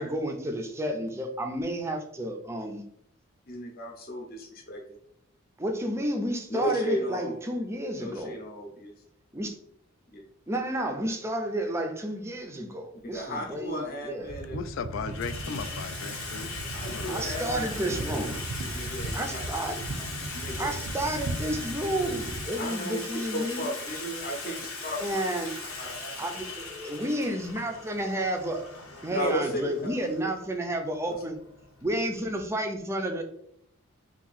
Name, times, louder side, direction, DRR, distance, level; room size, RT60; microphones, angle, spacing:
voice 1, 0.0-2.8 5.6-8.4 9.3-9.6 10.5-14.3 17.1-18.5 19.1-19.8 20.6-23.7 25.0-25.5 26.1-28.6 29.0-31.4 31.8-33.2, right 1 dB, 15° right, 0.4 m, -31 dB
voice 2, 3.5-4.8 6.5-7.3 8.0-8.9 10.1-10.2 13.0-14.6 16.7-17.6 18.6-19.4 20.3-20.7 22.6-23.0 23.3-25.2 25.8-26.1 29.1-29.6 31.1-31.2, equal, 45° left, 0.7 m, -34 dB
Water tap faucet / Sink (filling or washing), 13.1-13.2 14.1-14.5 14.8-32.4, left 3 dB, 90° left, 0.8 m, -39 dB
sound 1, 14.2-22.5, right 2 dB, 70° right, 0.5 m, -37 dB
voice 3, 14.5-17.8, left 5 dB, 65° left, 0.3 m, -38 dB
2.8 x 2.6 x 4.0 m
head